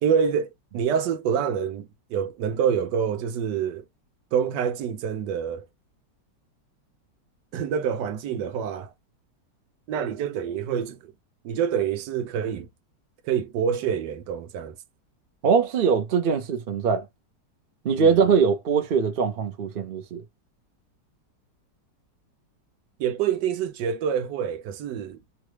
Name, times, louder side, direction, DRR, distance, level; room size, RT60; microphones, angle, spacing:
voice 1, 0.0-3.9 4.3-5.6 7.5-8.9 9.9-11.1 11.4-12.7 13.2-14.7 18.0-18.2 23.0-25.2, right 7 dB, 85° right, 1.3 m, -26 dB
voice 2, 15.4-17.1 17.8-20.2, right 6 dB, 50° right, 0.6 m, -22 dB
3.1 x 2.4 x 3.1 m
omnidirectional pair, 1.8 m